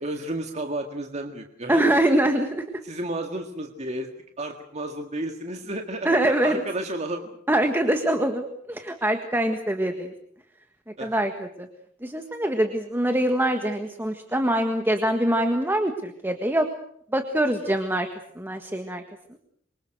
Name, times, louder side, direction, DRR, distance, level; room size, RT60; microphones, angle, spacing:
voice 1, 0.0-1.8 2.8-4.1 4.4-7.3 11.0-11.2 17.6-17.7, right 1 dB, 35° right, 4 dB, 1.9 m, -32 dB
voice 2, 1.7-2.6 6.0-6.6 7.5-10.1 11.0-11.7 12.0-16.7 17.1-18.1 18.3-19.0 19.3-19.4, right 1 dB, 10° right, 5 dB, 1.6 m, -24 dB
27.5 x 24.0 x 6.6 m, 0.66 s
head